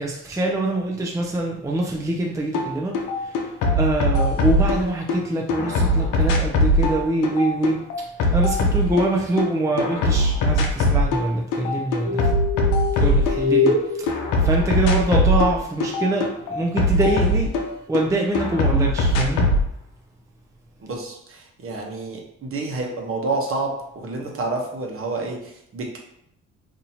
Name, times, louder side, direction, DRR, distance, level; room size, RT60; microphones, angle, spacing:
voice 1, 0.0-3.5 3.8-7.8 8.3-12.2 13.0-17.5 17.9-19.4, right 2 dB, 10° right, -1 dB, 0.5 m, -24 dB
sound 1, 2.5-2.7 2.9-5.2 5.5-9.5 9.8-11.3 11.5-13.8 14.1-18.0 18.4-19.6, left 1 dB, 90° left, 0.7 m, -20 dB
sound 2, 12.0-15.0 15.9-16.4, left 4 dB, 80° right, 0.9 m, -25 dB
voice 2, 20.8-26.0, right 3 dB, 45° right, 0 dB, 1.0 m, -29 dB
4.1 x 2.7 x 2.8 m, 0.74 s
cardioid pair, 90°, 30 cm